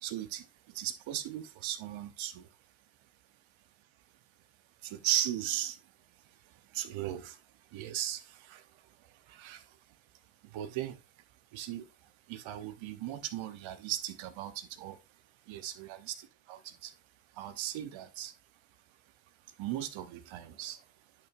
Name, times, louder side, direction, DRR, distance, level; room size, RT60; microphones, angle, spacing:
voice 1, 0.0-2.5 4.8-5.8 6.4-7.4 7.7-9.8 10.4-11.0 11.5-15.0 15.5-16.9 17.3-18.3 19.5-20.8, right 12 dB, 80° right, 1.1 m, -38 dB
10.5 x 6.0 x 2.6 m
supercardioid pair, 70°, 46 cm